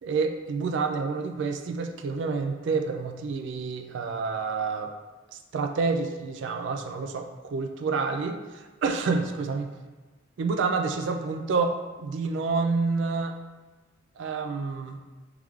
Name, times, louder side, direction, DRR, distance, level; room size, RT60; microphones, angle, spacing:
voice 1, 0.0-4.9 5.3-9.7 10.4-13.4 14.2-15.0, right 4 dB, 65° right, 5 dB, 0.3 m, -28 dB
3.5 x 3.1 x 3.5 m, 1.3 s
head